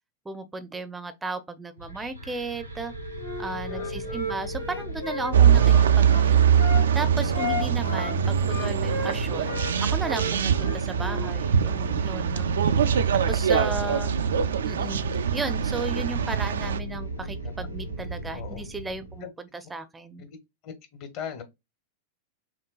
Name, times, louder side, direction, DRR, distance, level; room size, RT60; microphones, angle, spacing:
voice 1, 0.3-2.9 3.4-6.4 6.9-12.5 13.3-14.1 14.6-20.2, right 3 dB, 10° right, 0.5 m, -35 dB
sound 1, 1.8-19.2, right 2 dB, 85° right, 0.7 m, -35 dB
Wind instrument woodwind instrument, 3.2-6.8 7.3-9.8 10.0-11.3, left 3 dB, 85° left, 1.4 m, -34 dB
voice 2, 3.5-4.4 7.6-7.8 13.7-14.1 17.4-17.5 18.3-18.6 19.2-19.3 20.2-20.4 20.6-21.4, left 7 dB, 40° left, 1.0 m, -41 dB
sound 2, 5.3-16.8, right 8 dB, 65° right, 0.3 m, -23 dB
6.0 x 2.2 x 2.3 m
figure-of-eight pair, 90°, 0 cm